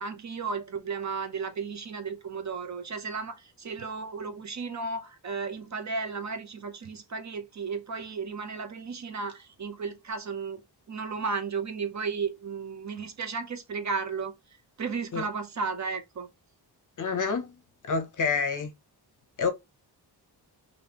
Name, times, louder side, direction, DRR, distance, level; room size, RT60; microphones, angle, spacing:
voice 1, 0.0-10.6 10.9-14.3 14.8-16.3, right 5 dB, 40° right, 0.6 m, -34 dB
voice 2, 17.0-17.5 17.9-18.7 19.4-19.5, left 5 dB, 45° left, 0.6 m, -27 dB
3.4 x 2.6 x 2.8 m
wide cardioid pair, 145°, 42 cm